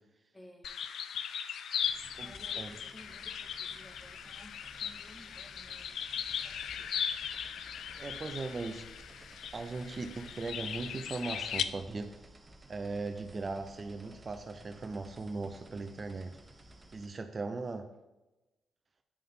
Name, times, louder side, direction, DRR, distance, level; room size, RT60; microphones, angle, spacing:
voice 1, 0.3-0.7 2.2-6.9, left 1 dB, 25° left, 2 dB, 1.8 m, -56 dB
sound 1, 0.6-11.6, left 8 dB, 70° left, 0.4 m, -38 dB
sound 2, 1.8-17.1, right 1 dB, 25° right, 1.0 m, -56 dB
voice 2, 7.9-8.9 9.5-12.2 12.7-16.4 16.9-17.9, right 3 dB, 45° right, 8 dB, 0.7 m, -38 dB
8.6 x 5.4 x 3.8 m, 1.0 s
hypercardioid pair, 50°, 0 cm